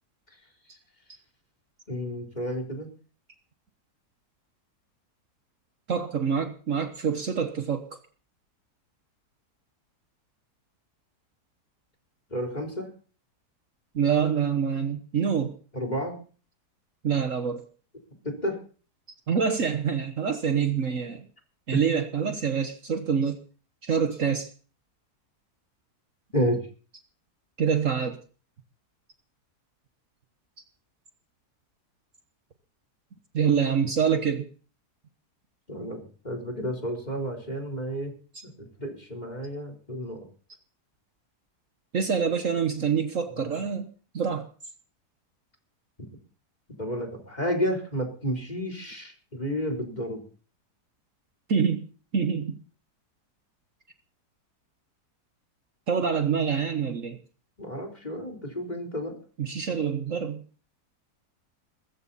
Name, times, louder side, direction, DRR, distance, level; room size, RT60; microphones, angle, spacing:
voice 1, 1.9-2.9 12.3-12.9 15.7-16.2 18.2-18.6 21.7-21.8 26.3-26.6 35.7-38.1 38.4-38.5 38.8-40.3 43.4-43.6 46.8-50.2 57.6-59.2, equal, 25° left, 4 dB, 4.0 m, -31 dB
voice 2, 5.9-7.8 13.9-15.5 17.0-17.6 19.3-21.2 21.7-23.4 23.8-24.5 27.6-28.2 33.3-34.5 38.3-38.4 41.9-43.9 44.1-44.5 51.5-51.9 52.1-52.6 55.9-57.2 59.4-60.4, right 7 dB, 55° right, 8 dB, 1.5 m, -26 dB
21.0 x 14.5 x 4.2 m, 0.39 s
omnidirectional pair, 1.7 m